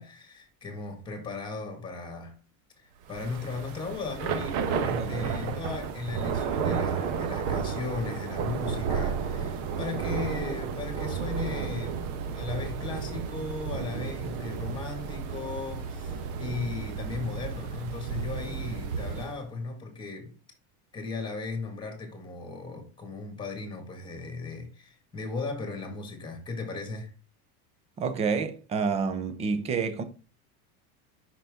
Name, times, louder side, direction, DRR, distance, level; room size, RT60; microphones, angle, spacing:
voice 1, 0.0-2.4 2.8-20.4 20.9-27.1, left 4 dB, 10° left, 1.6 m, -37 dB
Thunder / Rain, 3.1-19.4, right 6 dB, 60° right, 1.0 m, -32 dB
voice 2, 5.0-5.3 28.0-30.0, right 5 dB, 15° right, 0.3 m, -29 dB
5.8 x 5.8 x 3.5 m
cardioid pair, 170°, 42 cm